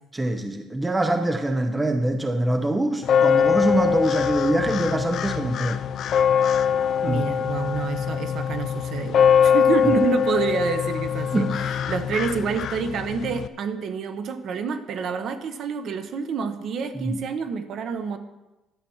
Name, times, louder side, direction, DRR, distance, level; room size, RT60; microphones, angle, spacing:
voice 1, 0.1-5.8 7.0-7.3 9.8-10.0 11.3-11.6 16.9-17.2, right 1 dB, 10° right, 6 dB, 0.6 m, -24 dB
sound 1, 3.0-13.5, left 8 dB, 45° left, 0.4 m, -23 dB
voice 2, 7.0-11.5 11.9-18.2, right 6 dB, 45° right, 9 dB, 0.9 m, -28 dB
11.5 x 5.9 x 7.1 m, 1.0 s
cardioid pair, 165°, 0 cm